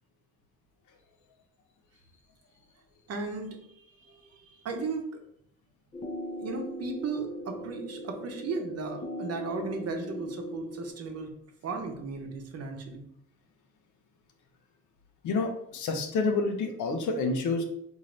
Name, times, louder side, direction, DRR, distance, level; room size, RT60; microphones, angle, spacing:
voice 1, 3.1-5.2 6.4-11.3 11.6-13.0, right 4 dB, 55° right, 4 dB, 0.8 m, -36 dB
sound 1, 5.9-10.9, equal, 20° left, 0.5 m, -39 dB
voice 2, 15.2-17.6, left 3 dB, 80° left, 5 dB, 0.7 m, -28 dB
3.8 x 2.7 x 3.2 m, 0.72 s
cardioid pair, 90°, 30 cm